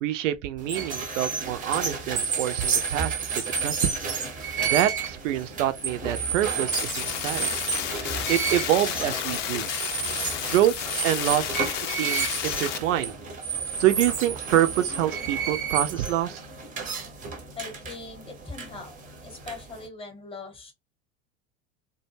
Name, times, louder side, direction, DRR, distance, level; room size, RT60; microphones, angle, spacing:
voice 1, 0.0-4.0 4.6-7.5 8.3-9.7 10.4-10.7 11.0-13.2 13.8-16.4, right 12 dB, 60° right, 0.5 m, -26 dB
sound 1, 0.6-19.9, right 6 dB, 20° right, 0.6 m, -31 dB
sound 2, 6.7-12.8, left 9 dB, 60° left, 0.6 m, -31 dB
voice 2, 17.5-18.9 19.2-20.7, left 4 dB, 15° left, 0.9 m, -40 dB
2.2 x 2.0 x 3.2 m
figure-of-eight pair, 80°, 42 cm